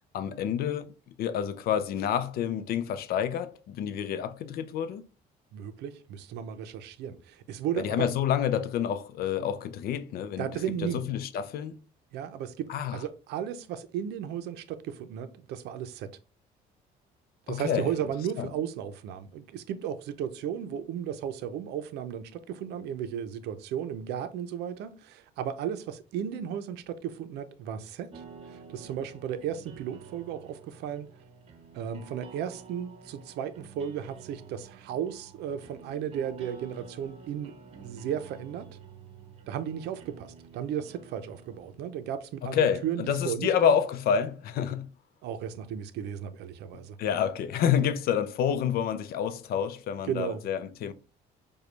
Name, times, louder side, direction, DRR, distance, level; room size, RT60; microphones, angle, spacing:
voice 1, 0.1-5.1 7.8-10.5 10.9-11.8 12.7-13.0 17.5-17.9 18.4-18.5 42.4-44.9 47.0-50.9, left 8 dB, 65° left, 0.5 m, -28 dB
voice 2, 5.5-8.1 10.4-11.0 12.1-16.1 17.5-31.1 31.7-38.7 39.5-43.7 45.2-47.0 47.8-47.9 50.1-50.4, right 9 dB, 80° right, 0.5 m, -35 dB
sound 1, 28.1-41.8, right 6 dB, 40° right, 0.8 m, -50 dB
4.9 x 2.3 x 3.2 m
cardioid pair, 110°, 17 cm